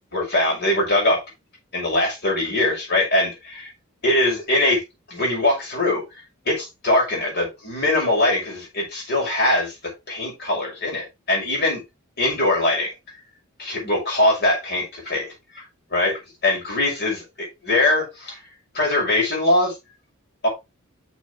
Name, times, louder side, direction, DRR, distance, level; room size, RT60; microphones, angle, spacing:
voice 1, 0.1-1.2 1.7-3.7 4.0-4.8 5.1-6.2 6.4-9.7 10.1-11.8 12.2-12.9 13.6-15.3 15.9-18.4 18.7-19.7 20.4-20.5, left 1 dB, 55° left, 6.4 m, -22 dB
9.4 x 6.6 x 3.4 m
head